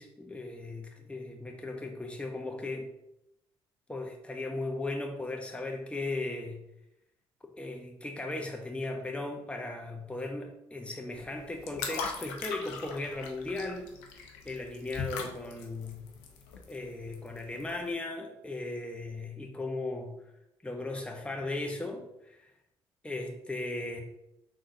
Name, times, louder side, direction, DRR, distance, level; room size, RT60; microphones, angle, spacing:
voice 1, 0.0-2.9 3.9-6.6 7.6-16.0 16.7-20.1 20.6-22.5 23.0-24.0, left 2 dB, 10° left, 2 dB, 0.8 m, -37 dB
sound 1, 11.1-17.9, left 5 dB, 80° left, 0.6 m, -40 dB
4.8 x 3.8 x 2.6 m, 0.84 s
hypercardioid pair, 50°, 13 cm